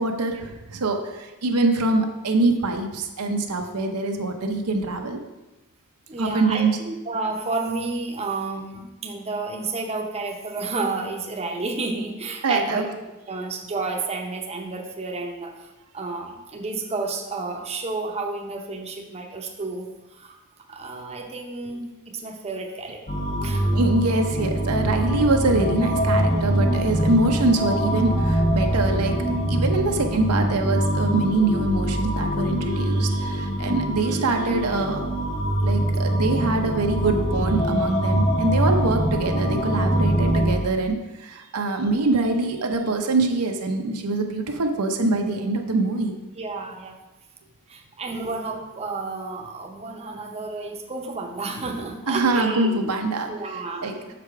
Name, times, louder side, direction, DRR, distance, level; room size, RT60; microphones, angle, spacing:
voice 1, 0.0-5.2 6.2-6.8 12.4-12.9 23.7-35.0 35.6-46.1 52.1-54.0, right 2 dB, 90° right, 4 dB, 0.8 m, -24 dB
voice 2, 6.1-12.9 13.3-20.4 20.7-23.0 23.4-23.7 26.3-26.7 46.4-47.0 47.7-52.8 53.3-53.9, right 3 dB, 30° right, 2 dB, 0.7 m, -31 dB
sound 1, 23.1-40.6, equal, 30° left, 0.9 m, -23 dB
6.8 x 5.0 x 4.7 m, 1.1 s
head